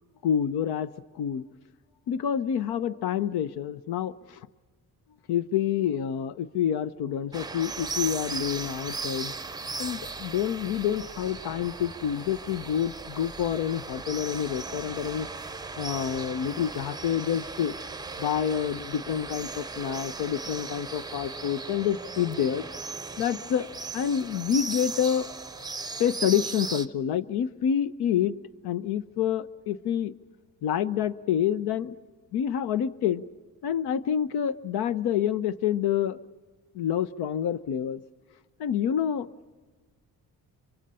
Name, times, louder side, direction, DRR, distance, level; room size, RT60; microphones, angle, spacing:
voice 1, 0.2-0.9 1.2-1.4 2.1-4.4 5.3-9.3 9.8-15.3 15.8-17.7 18.2-22.6 23.2-23.7 23.9-25.3 26.0-28.4 28.6-30.1 30.6-32.0 32.3-33.2 33.6-36.2 36.7-38.0 38.6-39.3, left 9 dB, 80° left, 15 dB, 0.8 m, -28 dB
sound 1, 7.3-26.9, right 4 dB, 10° right, 0.6 m, -37 dB
25.0 x 24.0 x 5.5 m, 1.4 s
cardioid pair, 75°, 38 cm